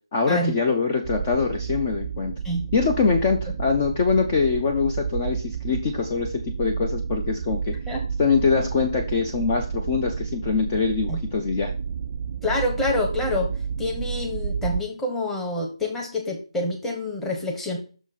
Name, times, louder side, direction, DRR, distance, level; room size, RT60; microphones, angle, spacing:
voice 1, 0.1-2.3 2.7-7.7 8.2-11.7, left 5 dB, 25° left, 3 dB, 0.7 m, -23 dB
sound 1, 1.0-14.8, right 6 dB, 35° right, 0.4 m, -31 dB
voice 2, 12.4-13.5 13.8-17.8, left 1 dB, 5° left, 0 dB, 1.1 m, -27 dB
6.2 x 5.9 x 4.1 m, 0.37 s
figure-of-eight pair, 160°, 3 cm